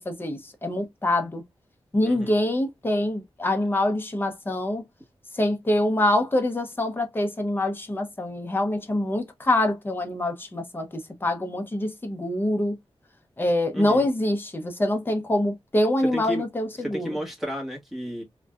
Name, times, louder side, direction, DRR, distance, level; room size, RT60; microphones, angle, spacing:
voice 1, 0.0-1.4 1.9-4.8 5.3-12.8 13.4-17.2, left 1 dB, 20° left, 0.7 m, -25 dB
voice 2, 13.7-14.1 16.0-16.4 16.8-18.2, equal, ahead, 1.4 m, -32 dB
3.6 x 2.6 x 2.3 m
wide cardioid pair, 120°, 10 cm